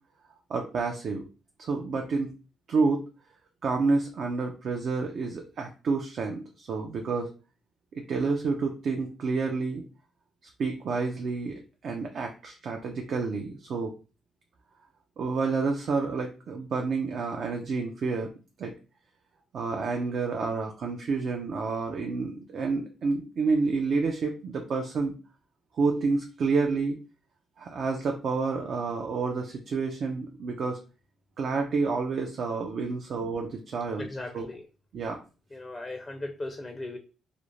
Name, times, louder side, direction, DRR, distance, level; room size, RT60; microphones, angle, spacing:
voice 1, 0.5-1.2 1.6-2.3 2.7-3.0 3.6-7.3 7.9-9.8 10.6-13.9 15.2-18.3 18.6-18.7 19.5-25.1 25.7-27.0 27.6-30.8 31.4-34.1 34.3-34.5 34.9-35.2, right 4 dB, 60° right, 2 dB, 0.4 m, -29 dB
voice 2, 34.0-34.6 35.5-37.0, left 2 dB, 20° left, 3 dB, 0.4 m, -37 dB
2.4 x 2.1 x 3.0 m, 0.34 s
cardioid pair, 90°, 0 cm